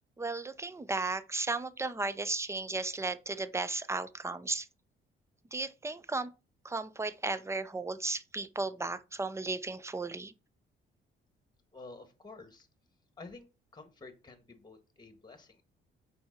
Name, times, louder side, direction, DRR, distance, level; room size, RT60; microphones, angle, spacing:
voice 1, 0.2-4.7 5.5-6.3 6.6-10.3, right 3 dB, 15° right, 0.6 m, -35 dB
voice 2, 11.7-12.7 13.2-13.5 13.7-15.6, left 3 dB, 20° left, 1.6 m, -50 dB
5.9 x 4.9 x 5.8 m
cardioid pair, 90°, 20 cm